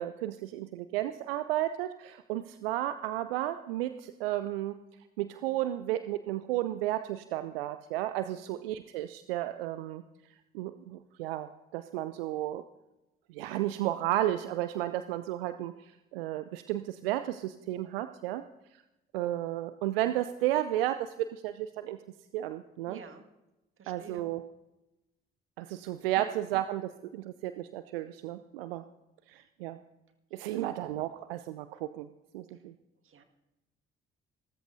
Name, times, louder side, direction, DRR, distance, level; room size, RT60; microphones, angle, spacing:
voice 1, 0.0-4.7 5.2-10.0 10.5-12.6 13.3-18.4 19.1-22.0 22.3-23.0 23.9-24.4 25.6-28.8 29.3-29.8 30.3-32.1 32.3-32.7, right 14 dB, 75° right, 11 dB, 0.6 m, -33 dB
voice 2, 22.9-23.3 23.8-24.3 25.7-25.8 26.1-26.2 30.4-30.7 32.5-32.6 33.0-33.2, right 6 dB, 45° right, 6 dB, 1.9 m, -50 dB
27.5 x 14.0 x 2.7 m, 0.97 s
figure-of-eight pair, 45°, 29 cm